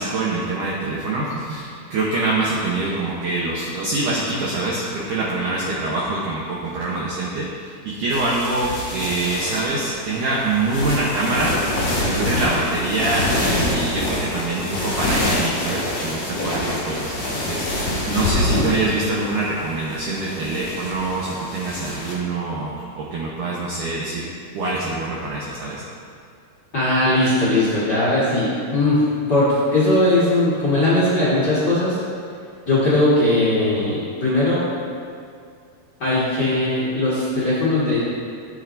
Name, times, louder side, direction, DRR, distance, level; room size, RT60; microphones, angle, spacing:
voice 1, 0.0-24.3 24.5-25.8, right 2 dB, 70° right, -5 dB, 2.0 m, -25 dB
sound 1, 8.1-22.1, left 1 dB, 45° left, 2.1 m, -26 dB
voice 2, 26.7-29.0 29.3-32.0 32.7-34.6 36.0-38.0, left 1 dB, 60° left, -9 dB, 1.0 m, -19 dB
13.0 x 7.8 x 2.6 m, 2.4 s
omnidirectional pair, 4.7 m